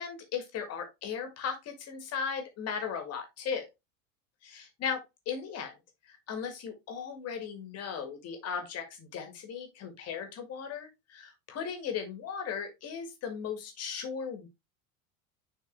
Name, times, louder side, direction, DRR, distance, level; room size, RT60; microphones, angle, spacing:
voice 1, 0.0-3.7 4.4-5.7 6.1-14.5, left 6 dB, 35° left, 2.1 m, -37 dB
6.8 x 4.3 x 3.5 m
figure-of-eight pair, 75°, 41 cm